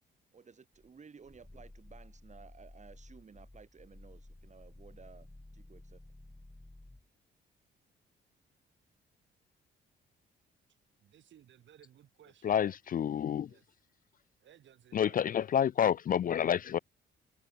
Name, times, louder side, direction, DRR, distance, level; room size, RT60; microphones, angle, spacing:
voice 1, 0.3-5.3 5.5-6.0, right 5 dB, 35° right, 3.2 m, -56 dB
Growling, 0.7-7.1, left 1 dB, 10° left, 1.7 m, -54 dB
voice 2, 11.0-12.6 13.4-13.6 14.4-15.2, right 10 dB, 70° right, 5.7 m, -60 dB
voice 3, 12.4-13.5 14.9-16.8, left 9 dB, 45° left, 0.5 m, -29 dB
open air
cardioid pair, 90°, 20 cm